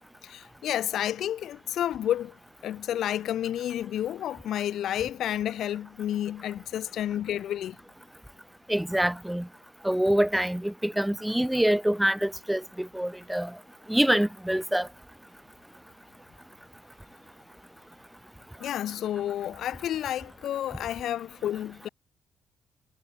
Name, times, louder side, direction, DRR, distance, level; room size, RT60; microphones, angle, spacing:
voice 1, 0.2-2.4 2.6-7.8 18.6-21.9, left 11 dB, 65° left, 3.1 m, -30 dB
voice 2, 8.7-9.5 9.8-13.5 13.9-14.9, right 1 dB, 5° right, 1.4 m, -25 dB
cardioid pair, 130°, 0 cm